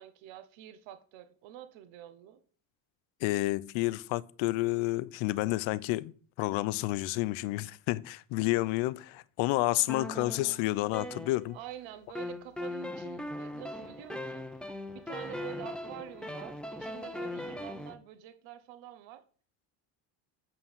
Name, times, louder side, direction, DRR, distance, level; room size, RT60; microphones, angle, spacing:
voice 1, 0.0-2.4 11.5-14.4 14.9-19.2, right 11 dB, 75° right, 1.4 m, -47 dB
voice 2, 3.2-11.6, left 19 dB, 80° left, 0.7 m, -30 dB
sound 1, 9.9-11.7 12.2-17.9, left 1 dB, ahead, 0.6 m, -39 dB
8.1 x 5.8 x 7.3 m
cardioid pair, 170°, 46 cm